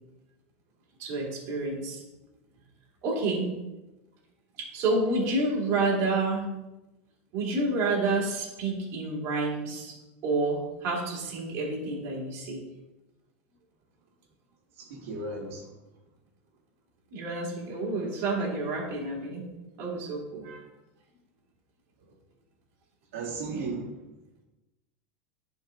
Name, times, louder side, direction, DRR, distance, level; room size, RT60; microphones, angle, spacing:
voice 1, 1.0-2.0 3.0-3.5 4.6-6.5 7.3-10.0 10.2-12.6 17.1-19.4 19.8-20.6 23.5-23.8, right 2 dB, 45° right, -4 dB, 2.9 m, -29 dB
voice 2, 14.8-15.7 23.1-24.1, right 3 dB, 80° right, -4 dB, 1.9 m, -36 dB
10.5 x 4.7 x 3.5 m, 1.0 s
supercardioid pair, 150°, 7 cm